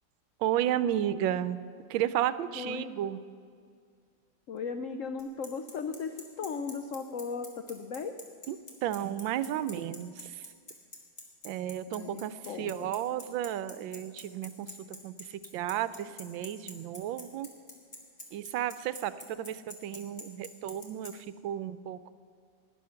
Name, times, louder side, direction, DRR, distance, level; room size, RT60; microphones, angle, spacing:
voice 1, 0.4-1.6 1.9-3.2 8.5-8.6 8.8-10.1 11.4-14.7 15.0-15.1 15.5-17.5 18.3-19.1 19.4-22.1, right 11 dB, 80° right, 14 dB, 1.3 m, -32 dB
voice 2, 2.5-2.9 4.5-8.2 11.9-12.9, left 5 dB, 85° left, 7 dB, 0.7 m, -37 dB
Bicycle, 5.2-21.1, left 1 dB, 30° left, 2.2 m, -44 dB
18.0 x 11.0 x 5.7 m, 2.2 s
omnidirectional pair, 2.1 m